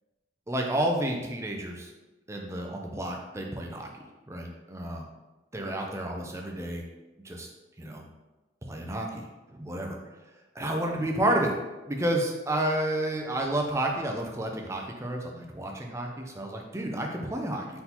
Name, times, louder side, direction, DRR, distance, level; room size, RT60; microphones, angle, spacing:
voice 1, 0.5-1.9 2.3-3.9 4.3-5.1 5.5-6.8 7.2-7.5 7.8-8.0 8.6-9.3 9.6-10.0 10.6-11.5 11.9-17.8, right 1 dB, 15° right, 1 dB, 0.5 m, -30 dB
4.1 x 3.8 x 2.9 m, 1.1 s
head